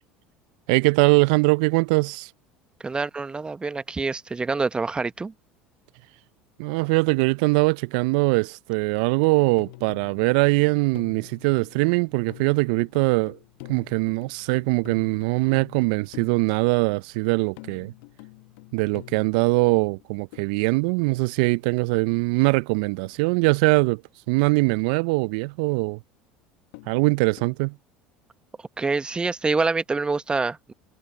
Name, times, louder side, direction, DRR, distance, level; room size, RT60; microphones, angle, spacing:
voice 1, 0.7-2.3 6.6-13.4 13.7-17.9 18.7-24.0 24.3-26.0 26.9-27.7, right 28 dB, 65° right, 0.5 m, -22 dB
voice 2, 2.8-5.3 28.8-30.7, right 4 dB, 20° right, 1.1 m, -26 dB
sound 1, 9.1-22.4 23.0-23.6 24.5-24.6 26.7-27.6, left 24 dB, 65° left, 1.4 m, -48 dB
hypercardioid pair, 70°, 5 cm